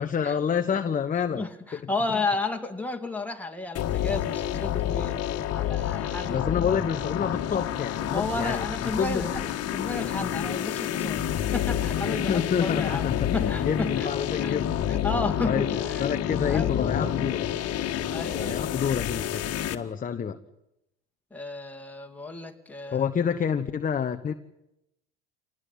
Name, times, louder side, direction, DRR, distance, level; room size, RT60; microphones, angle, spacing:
voice 1, 0.0-1.4 1.7-2.2 6.3-9.5 12.1-15.0 15.4-15.7 16.0-17.5 18.4-20.4 22.9-24.3, left 7 dB, 25° left, 7 dB, 1.1 m, -28 dB
voice 2, 1.4-5.2 5.5-6.5 8.1-9.4 9.7-11.2 11.5-13.0 13.3-14.1 14.4-14.6 14.9-17.1 18.1-18.6 21.3-23.0, left 3 dB, 5° left, 3 dB, 2.5 m, -32 dB
sound 1, 3.7-19.7, left 10 dB, 45° left, 1.8 m, -29 dB
26.5 x 19.0 x 8.1 m, 0.88 s
hypercardioid pair, 75°, 35 cm